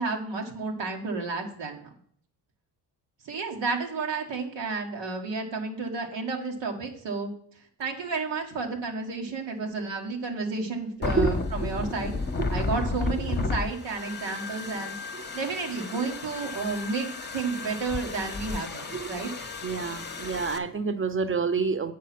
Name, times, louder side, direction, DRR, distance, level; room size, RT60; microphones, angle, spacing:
voice 1, 0.0-1.9 3.2-7.3 7.8-12.1 12.5-14.9 15.3-19.3, right 4 dB, 90° right, 2 dB, 1.4 m, -31 dB
sound 1, 11.0-20.6, left 3 dB, 25° left, 0.9 m, -33 dB
voice 2, 13.2-13.5 15.1-15.2 18.9-19.2 19.6-21.9, right 5 dB, 30° right, 11 dB, 0.9 m, -29 dB
7.6 x 4.9 x 5.8 m, 0.63 s
cardioid pair, 60°, 43 cm